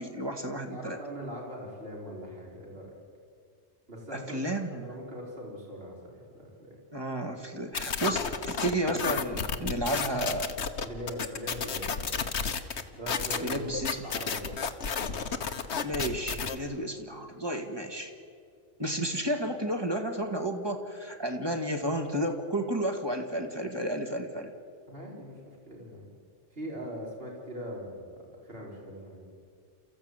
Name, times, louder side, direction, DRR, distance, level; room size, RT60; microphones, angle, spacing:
voice 1, 0.0-1.0 4.1-4.9 6.9-10.5 13.4-14.0 15.8-18.1 18.8-24.5, right 1 dB, 20° right, 4 dB, 1.9 m, -32 dB
voice 2, 0.7-2.9 3.9-6.7 10.8-12.1 12.9-13.7 14.0-14.6 24.9-26.1 26.5-28.1 28.4-29.3, equal, 55° right, -2 dB, 4.8 m, -41 dB
sound 1, 7.7-16.6, left 6 dB, 70° left, 1.4 m, -32 dB
29.0 x 14.5 x 9.0 m, 2.3 s
omnidirectional pair, 1.2 m